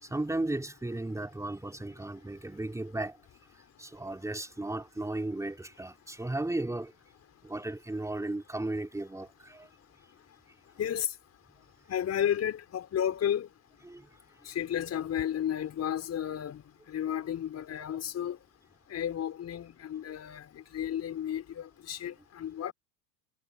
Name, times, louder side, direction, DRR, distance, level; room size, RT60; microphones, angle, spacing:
voice 1, 0.0-3.2 3.8-6.9 7.4-9.7 13.8-14.2, right 2 dB, 5° right, 3.7 m, -35 dB
voice 2, 10.8-11.1 11.9-13.5 14.4-18.4 18.9-22.7, left 10 dB, 30° left, 6.4 m, -33 dB
hypercardioid pair, 95°, 49 cm